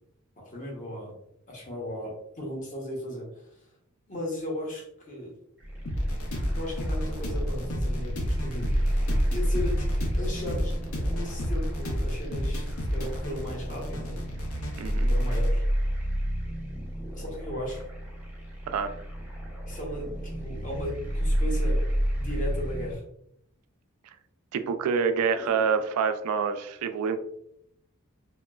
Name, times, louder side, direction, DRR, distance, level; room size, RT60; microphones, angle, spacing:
voice 1, 0.4-1.1 1.5-3.6 4.1-5.3 6.5-9.9 10.2-10.7 11.0-14.2 15.0-15.6 17.1-17.8 19.7-21.8 22.1-23.0 26.2-26.3, left 1 dB, 35° left, -2 dB, 0.8 m, -36 dB
sound 1, 5.6-23.0, equal, 10° right, 0.7 m, -30 dB
sound 2, 5.9-15.5, equal, 80° left, 0.6 m, -31 dB
voice 2, 14.8-15.1 18.7-18.9 24.0-24.2 24.5-27.2, right 6 dB, 85° right, 10 dB, 0.3 m, -27 dB
2.9 x 2.2 x 2.2 m, 0.74 s
head